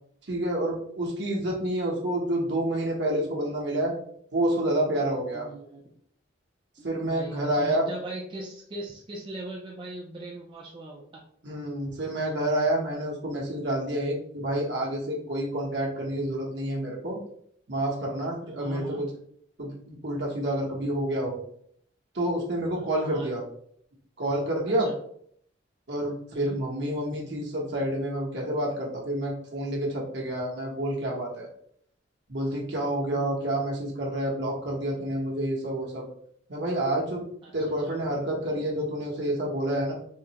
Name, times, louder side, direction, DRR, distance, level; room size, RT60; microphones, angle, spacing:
voice 1, 0.3-3.9 4.3-5.5 6.8-7.9 11.4-17.2 17.7-19.1 19.6-21.4 22.1-23.4 24.2-24.9 25.9-31.5 32.3-36.0 36.5-37.2 37.5-39.9, right 1 dB, 60° right, -3 dB, 0.9 m, -28 dB
voice 2, 5.3-5.9 6.8-11.2 18.4-19.0 22.7-23.3 24.8-24.9 26.3-26.6 33.1-33.5 37.4-38.1, right 2 dB, 25° right, -3 dB, 0.4 m, -40 dB
3.6 x 2.1 x 2.8 m, 0.64 s
head